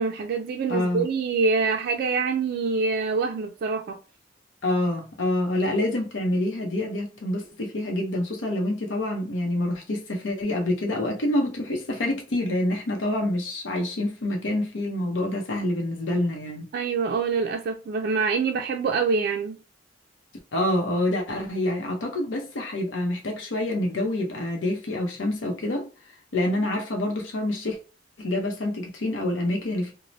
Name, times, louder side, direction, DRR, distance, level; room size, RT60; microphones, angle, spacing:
voice 1, 0.0-4.0 16.7-19.6, right 4 dB, 55° right, 0.3 m, -25 dB
voice 2, 0.7-1.1 4.6-16.7 20.5-25.9 26.3-27.8 28.2-29.9, left 1 dB, 90° left, 0.6 m, -27 dB
2.6 x 2.0 x 3.1 m
head